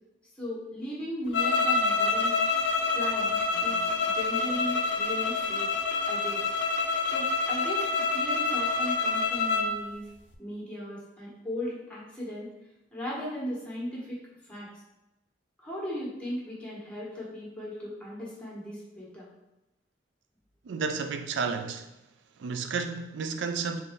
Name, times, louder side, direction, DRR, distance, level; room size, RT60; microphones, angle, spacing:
voice 1, 0.4-2.3 2.9-5.7 6.1-6.4 7.1-10.0 10.4-12.5 12.9-14.2 14.5-14.7 15.6-19.3, equal, 5° left, 1.2 m, -37 dB
sound 1, 1.3-9.7, left 4 dB, 85° left, 0.4 m, -27 dB
voice 2, 3.6-3.9 20.6-21.9 22.4-23.8, right 5 dB, 80° right, 0.4 m, -32 dB
3.8 x 2.7 x 3.6 m
head